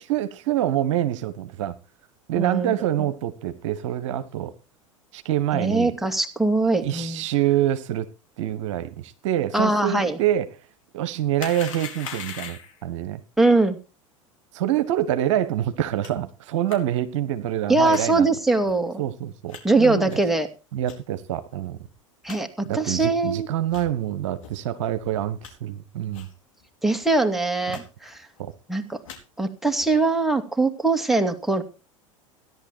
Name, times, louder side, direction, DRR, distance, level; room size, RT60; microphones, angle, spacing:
voice 1, 0.0-1.7 2.3-4.5 5.1-5.9 6.8-8.1 8.4-10.5 10.9-13.2 14.5-18.3 19.0-20.2 20.7-21.8 22.6-26.3 28.4-28.5, right 12 dB, 60° right, 1.3 m, -26 dB
voice 2, 2.3-2.7 5.5-7.2 9.5-10.2 13.4-13.8 17.7-19.0 19.6-20.5 22.2-22.5 22.7-23.5 26.8-28.2 28.7-29.0 29.4-31.6, right 3 dB, ahead, 2.6 m, -22 dB
sound 1, 11.4-12.8 16.0-16.1 16.7-16.8 17.8-18.1 18.6-18.7 19.5-19.6 20.1-20.3 20.8-21.0 21.5-21.6 21.9-22.0 22.3-22.4 22.9-23.1 23.7-23.9 24.4-24.5 25.0-25.5 26.1-26.3 26.6-26.7 27.0-27.2 27.7-27.8 28.1-28.5 28.9-29.2 29.8-30.0, left 7 dB, 70° left, 4.4 m, -39 dB
16.5 x 11.0 x 4.5 m
figure-of-eight pair, 80°, 17 cm